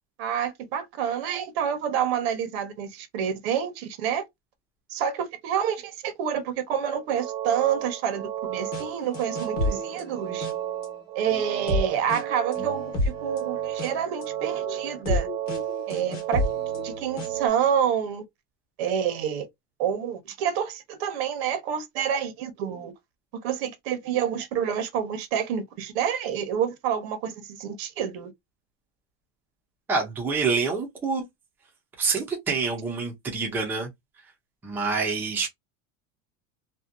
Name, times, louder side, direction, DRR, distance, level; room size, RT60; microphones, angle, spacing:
voice 1, 0.2-4.2 4.9-10.5 11.1-15.3 15.9-16.4 16.8-18.2 18.8-19.5 19.8-22.9 23.4-28.3, right 8 dB, 90° right, 0.9 m, -28 dB
sound 1, 7.0-17.5, right 12 dB, 60° right, 0.6 m, -33 dB
sound 2, 8.7-8.8 9.1-10.9 11.3-17.5, left 2 dB, 30° left, 0.9 m, -31 dB
voice 2, 29.9-31.2 32.0-33.9 34.6-35.5, right 4 dB, 5° right, 0.4 m, -26 dB
2.7 x 2.1 x 2.3 m
cardioid pair, 180°, 30 cm